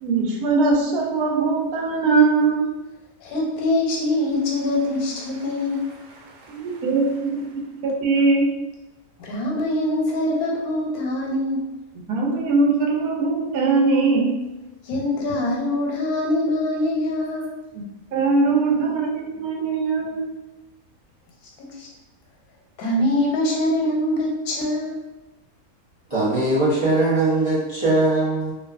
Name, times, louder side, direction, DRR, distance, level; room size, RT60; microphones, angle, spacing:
voice 1, 0.0-2.7 6.2-7.5 7.8-8.5 12.1-14.4 18.1-20.3, right 3 dB, 90° right, 0 dB, 1.1 m, -21 dB
voice 2, 3.2-6.0 9.2-11.7 14.8-17.5 21.6-21.9 22.8-25.0, left 1 dB, 90° left, -2 dB, 1.1 m, -24 dB
voice 3, 26.1-28.5, right 2 dB, 45° right, -10 dB, 0.4 m, -20 dB
2.5 x 2.3 x 2.3 m, 1.0 s
omnidirectional pair, 1.5 m